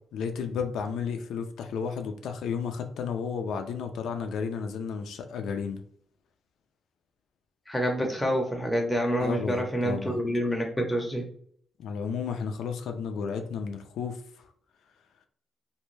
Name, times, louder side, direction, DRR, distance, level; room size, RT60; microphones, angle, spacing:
voice 1, 0.1-5.8 9.2-10.2 11.8-14.2, left 6 dB, 80° left, 6 dB, 0.4 m, -32 dB
voice 2, 7.7-11.2, equal, 5° left, 1 dB, 0.7 m, -27 dB
3.2 x 2.6 x 3.2 m, 0.63 s
cardioid pair, 140°, 0 cm